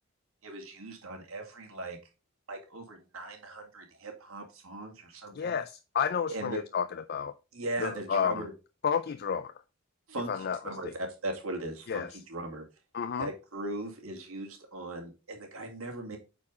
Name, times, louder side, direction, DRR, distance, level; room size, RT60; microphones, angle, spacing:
voice 1, 0.4-2.0 2.5-5.6 6.3-6.6 7.5-8.5 10.1-12.7 13.2-16.2, right 2 dB, 90° right, 2.3 m, -39 dB
voice 2, 5.3-7.3 7.8-8.5 8.8-9.5 10.3-10.9 11.9-12.1 12.9-13.3, left 7 dB, 50° left, 0.4 m, -31 dB
8.3 x 4.5 x 3.7 m
head